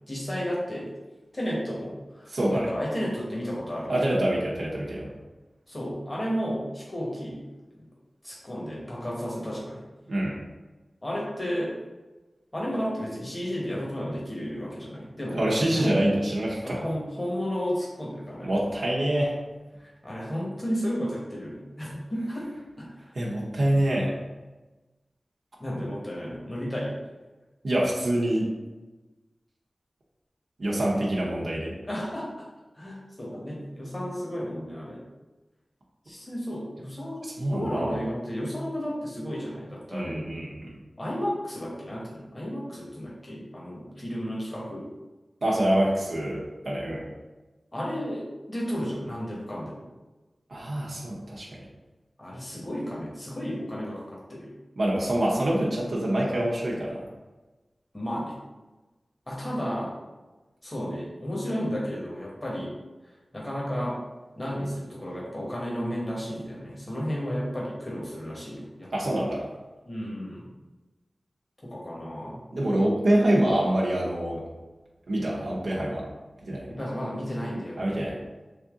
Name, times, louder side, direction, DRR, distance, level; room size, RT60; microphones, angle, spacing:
voice 1, 0.1-0.9 1.3-4.0 5.7-7.4 8.2-9.8 11.0-11.7 12.5-16.0 16.6-18.6 19.8-22.5 22.8-23.1 25.6-26.9 31.8-32.5 32.7-35.0 36.1-40.2 41.0-44.8 47.7-49.8 52.2-54.5 57.9-58.3 59.3-59.9 60.6-62.7 63.0-64.0 64.4-69.2 69.8-70.5 71.6-72.4 76.7-77.9, equal, 25° left, -5 dB, 1.2 m, -33 dB
voice 2, 2.3-2.7 3.9-5.1 10.1-10.3 15.3-16.8 18.4-19.3 23.2-24.1 27.6-28.5 30.6-31.7 37.4-37.9 39.9-40.8 45.4-47.0 50.5-51.5 54.8-57.0 68.9-69.4 72.5-74.4 75.1-76.0 76.4-76.7 77.8-78.2, right 1 dB, 75° right, -5 dB, 0.7 m, -25 dB
3.4 x 2.7 x 3.6 m, 1.2 s
wide cardioid pair, 55°, 0 cm